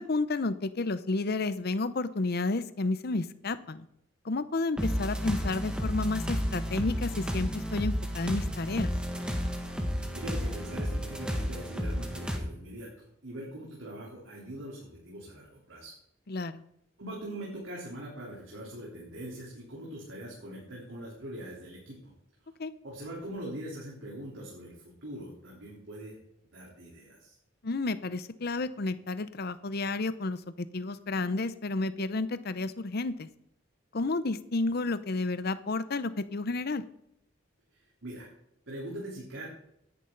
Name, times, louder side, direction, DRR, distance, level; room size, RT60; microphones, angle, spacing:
voice 1, 0.0-3.9 4.2-8.9 16.3-16.6 22.6-22.7 27.6-33.3 33.9-36.8, left 3 dB, 55° left, 13 dB, 0.7 m, -31 dB
sound 1, 4.8-12.4, equal, 5° right, 1.8 m, -32 dB
voice 2, 10.1-15.9 17.0-22.1 22.8-26.1 26.5-27.4 38.0-38.3 38.7-39.5, right 1 dB, 80° right, -4 dB, 3.7 m, -42 dB
17.5 x 11.0 x 3.9 m, 0.77 s
head